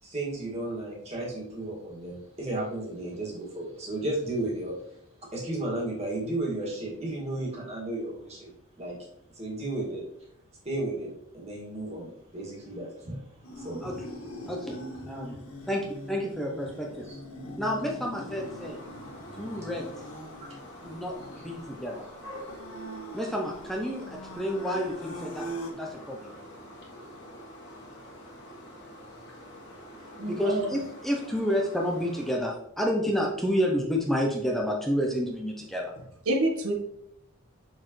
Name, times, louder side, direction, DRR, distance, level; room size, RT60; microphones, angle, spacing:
voice 1, 0.0-4.7 5.3-8.5 8.8-9.0 9.3-10.0 10.6-13.2 13.5-13.9 15.3-15.4 17.1-17.2, right 2 dB, 30° right, -3 dB, 2.2 m, -33 dB
sound 1, 13.4-25.7, equal, 75° left, 1.5 m, -42 dB
voice 2, 14.5-14.8 15.1-15.4 15.7-15.8 16.1-17.1 17.6-18.8 19.4-19.8 20.8-22.0 23.1-25.5 25.7-26.4 30.3-35.9, equal, ahead, -1 dB, 0.7 m, -30 dB
sound 2, 18.3-32.4, equal, 50° left, 1.5 m, -46 dB
voice 3, 30.2-30.7 36.3-36.7, right 1 dB, 80° right, 1 dB, 1.4 m, -27 dB
6.7 x 6.2 x 3.2 m, 0.76 s
head